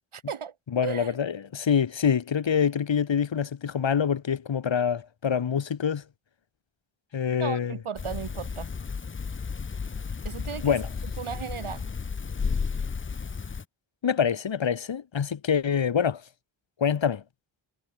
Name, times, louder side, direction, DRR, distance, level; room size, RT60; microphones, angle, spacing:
voice 1, 0.1-0.5 0.8-1.2 7.4-8.7 10.2-10.8 11.2-11.9, right 7 dB, 85° right, 3.5 m, -35 dB
voice 2, 0.7-6.0 7.1-7.8 10.6-10.9 14.0-16.2 16.8-17.2, left 7 dB, 65° left, 1.6 m, -25 dB
sound 1, 8.0-13.6, left 5 dB, 25° left, 0.6 m, -33 dB
cardioid pair, 55°, 48 cm